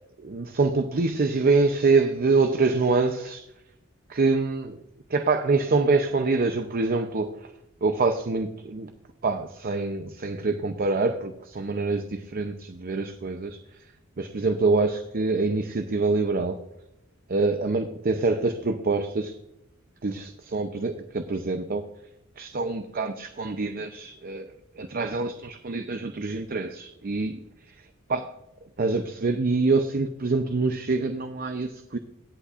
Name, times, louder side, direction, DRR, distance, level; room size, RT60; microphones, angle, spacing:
voice 1, 0.2-3.4 4.1-4.8 5.1-7.5 7.8-8.9 9.2-13.9 14.2-16.6 17.3-19.4 20.0-21.8 22.4-27.4 27.7-27.8 28.1-28.3 28.8-32.0, right 3 dB, 45° right, 8 dB, 0.6 m, -25 dB
16.5 x 8.1 x 2.5 m, 0.83 s
head